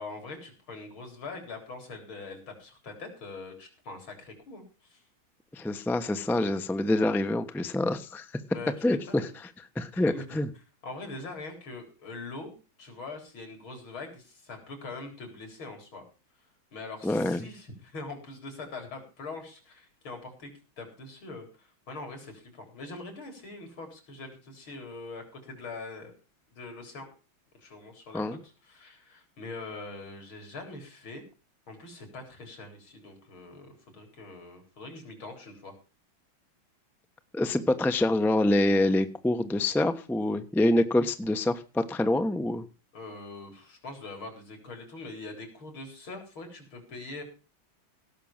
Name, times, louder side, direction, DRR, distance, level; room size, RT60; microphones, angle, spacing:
voice 1, 0.0-5.0 8.5-9.3 9.9-10.4 10.8-16.0 16.7-20.5 20.8-26.1 26.5-27.1 27.6-31.2 31.7-35.7 42.9-47.2, left 3 dB, 80° left, 4 dB, 4.8 m, -43 dB
voice 2, 5.5-8.2 8.8-9.3 9.8-10.5 17.0-17.5 28.1-28.4 37.3-42.6, left 1 dB, ahead, 9 dB, 0.6 m, -26 dB
17.5 x 6.4 x 7.3 m, 0.34 s
omnidirectional pair, 2.2 m